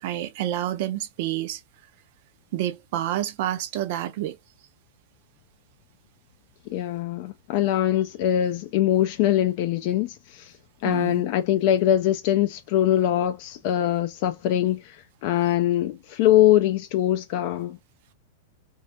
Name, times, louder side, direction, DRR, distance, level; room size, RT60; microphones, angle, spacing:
voice 1, 0.0-1.6 2.5-4.4 10.8-11.2, right 12 dB, 55° right, 0.4 m, -28 dB
voice 2, 6.7-10.5 10.8-15.0 15.2-17.8, left 12 dB, 50° left, 0.3 m, -22 dB
2.2 x 2.1 x 2.7 m
hypercardioid pair, 100°, 0 cm